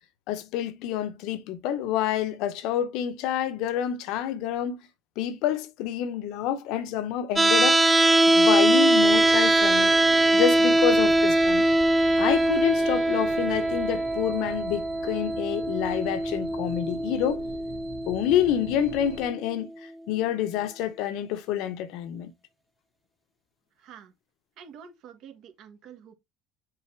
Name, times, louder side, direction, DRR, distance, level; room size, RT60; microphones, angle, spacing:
voice 1, 0.3-4.8 5.2-7.8 8.3-9.9 10.3-11.7 12.2-17.4 18.1-22.3, left 10 dB, 70° left, 0.9 m, -28 dB
sound 1, 7.4-19.4, right 1 dB, 10° right, 0.3 m, -22 dB
sound 2, 9.0-19.3, right 5 dB, 75° right, 2.4 m, -43 dB
voice 2, 23.8-24.1 24.6-26.1, right 7 dB, 60° right, 1.6 m, -47 dB
6.8 x 4.1 x 3.4 m
supercardioid pair, 110°, 0 cm